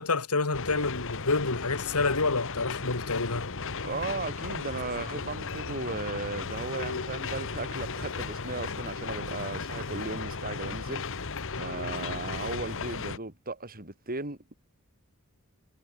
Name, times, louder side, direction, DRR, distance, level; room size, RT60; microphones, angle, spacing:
voice 1, 0.0-3.5, left 3 dB, 85° left, 2.3 m, -28 dB
sound 1, 0.5-13.2, left 4 dB, 65° left, 1.6 m, -35 dB
voice 2, 3.8-11.2 11.6-14.5, right 3 dB, 40° right, 5.8 m, -36 dB
head